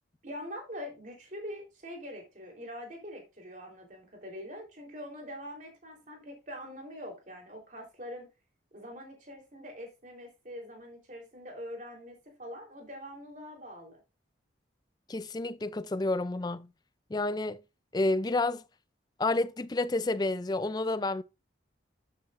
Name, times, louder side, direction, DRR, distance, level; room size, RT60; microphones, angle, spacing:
voice 1, 0.2-8.3 8.7-14.0, equal, 40° right, 3.6 m, -44 dB
voice 2, 15.1-16.7 17.1-17.6 17.9-18.6 19.2-21.2, left 2 dB, 20° left, 0.4 m, -29 dB
12.5 x 8.6 x 2.5 m
head